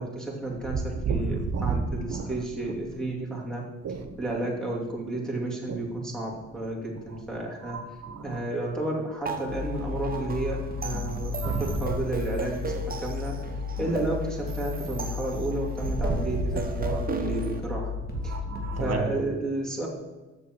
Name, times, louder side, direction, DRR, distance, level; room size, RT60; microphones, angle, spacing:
voice 1, 0.0-3.6 4.2-7.8 8.2-13.4 13.8-17.9 18.2-18.3 18.8-19.9, right 2 dB, ahead, 2.7 m, -32 dB
voice 2, 1.0-1.8 2.1-2.3 3.8-4.2 5.7-5.8 7.7-8.4 10.9-11.0 11.4-11.7 16.0-16.6 16.9-17.0 18.3-19.0, right 5 dB, 55° right, 1.2 m, -30 dB
sound 1, 9.2-17.6, right 4 dB, 30° right, 1.2 m, -36 dB
sound 2, 9.5-19.0, left 5 dB, 30° left, 2.4 m, -34 dB
6.9 x 6.4 x 6.3 m
cardioid pair, 90°, 30 cm